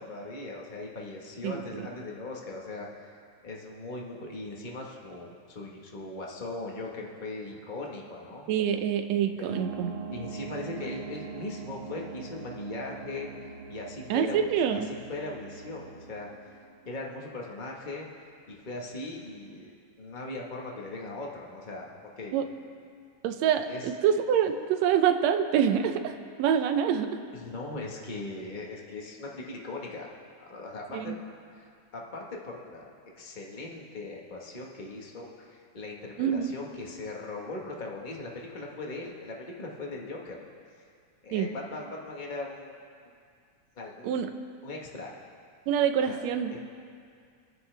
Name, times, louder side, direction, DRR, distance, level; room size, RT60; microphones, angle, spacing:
voice 1, 0.0-2.9 3.4-8.5 9.4-9.7 10.1-13.3 13.7-16.3 16.8-18.1 18.5-21.9 22.2-22.4 23.7-23.9 27.3-30.1 30.5-31.1 31.5-40.4 41.2-42.7 43.7-45.1 46.1-46.2 46.5-46.6, left 2 dB, 85° left, -2 dB, 0.4 m, -39 dB
voice 2, 1.4-1.9 8.5-9.9 14.1-14.9 22.3-22.5 23.2-27.2 30.9-31.2 36.2-36.5 41.3-41.5 44.0-44.3 45.7-46.5, right 8 dB, 70° right, 7 dB, 1.8 m, -26 dB
sound 1, 9.5-17.6, right 5 dB, 50° right, 1.9 m, -42 dB
27.0 x 9.6 x 3.4 m, 2.3 s
omnidirectional pair, 3.4 m